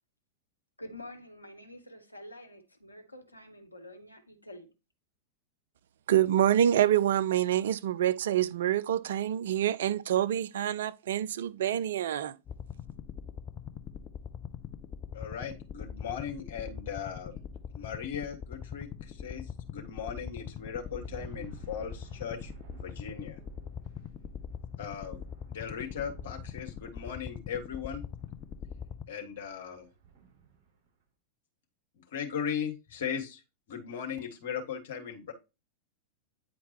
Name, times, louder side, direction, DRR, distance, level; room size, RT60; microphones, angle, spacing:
voice 1, 0.8-4.7, left 1 dB, 85° left, 1.0 m, -47 dB
voice 2, 6.1-12.3, right 11 dB, 60° right, 0.4 m, -26 dB
sound 1, 12.5-29.0, left 8 dB, 35° left, 0.6 m, -42 dB
voice 3, 15.1-17.4 17.7-23.4 24.8-28.1 29.1-29.9 32.0-33.4 33.7-35.3, left 7 dB, 55° left, 1.7 m, -38 dB
sound 2, 17.4-31.0, right 6 dB, 40° right, 4.3 m, -55 dB
9.3 x 4.5 x 3.0 m
figure-of-eight pair, 90°, 0 cm